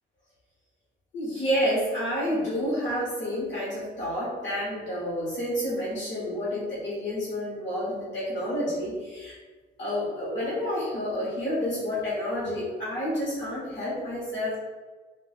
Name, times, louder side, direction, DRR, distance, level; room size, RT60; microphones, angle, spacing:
voice 1, 1.1-9.4 9.8-14.6, equal, 70° left, -8 dB, 1.1 m, -29 dB
2.5 x 2.4 x 4.0 m, 1.4 s
cardioid pair, 90°, 20 cm